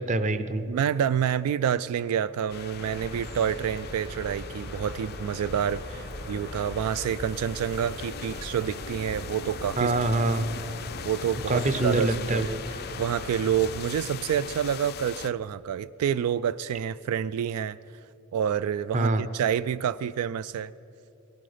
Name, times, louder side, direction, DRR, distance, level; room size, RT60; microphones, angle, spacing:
voice 1, 0.0-0.6 9.8-10.5 11.5-12.6 18.9-19.2, right 2 dB, 35° right, 12 dB, 0.6 m, -25 dB
voice 2, 0.7-9.9 11.0-12.5 13.0-17.8 18.3-20.7, right 8 dB, 85° right, 16 dB, 0.3 m, -28 dB
sound 1, 2.5-15.3, left 8 dB, 45° left, 0.4 m, -41 dB
sound 2, 2.8-13.9, equal, 55° right, 2.8 m, -40 dB
17.5 x 15.5 x 5.0 m, 2.8 s
head